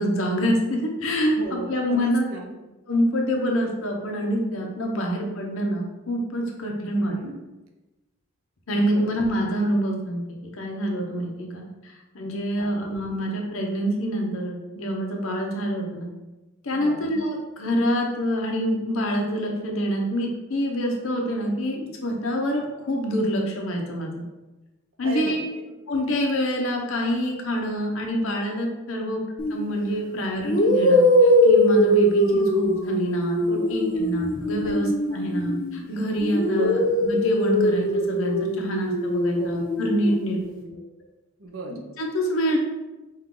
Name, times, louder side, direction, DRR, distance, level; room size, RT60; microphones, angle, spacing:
voice 1, 0.0-2.3 2.9-7.1 8.7-10.2 10.6-16.1 16.6-24.2 25.0-25.4 25.9-29.2 29.5-40.4 42.0-42.6, equal, 75° left, 1 dB, 0.8 m, -26 dB
voice 2, 1.4-2.5 7.0-7.3 8.9-9.1 12.5-12.8 16.7-17.1 25.0-25.4 29.0-29.1 33.6-34.1 34.6-34.7 35.1-35.2 36.6-36.7 39.4-39.6 40.3-40.7 41.4-41.8, right 2 dB, 75° right, 2 dB, 0.7 m, -36 dB
sound 1, 29.4-29.6 30.4-35.8 36.2-40.1, left 1 dB, 40° left, 0.6 m, -21 dB
5.3 x 2.4 x 3.7 m, 1.1 s
head